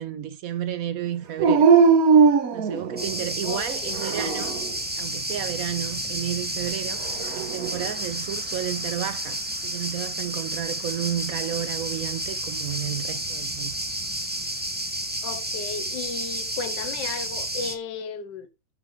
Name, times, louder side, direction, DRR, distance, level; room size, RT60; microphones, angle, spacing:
voice 1, 0.0-1.7 2.5-4.6 5.0-7.1 7.3-13.7, right 10 dB, 70° right, 0.8 m, -32 dB
Dog, 1.4-3.3 3.9-4.7 7.0-7.9, right 5 dB, 55° right, 1.2 m, -19 dB
sound 1, 3.0-17.7, right 1 dB, 10° right, 0.4 m, -31 dB
voice 2, 3.4-4.2 15.2-18.5, left 5 dB, 70° left, 1.5 m, -34 dB
9.5 x 4.9 x 4.6 m
omnidirectional pair, 2.1 m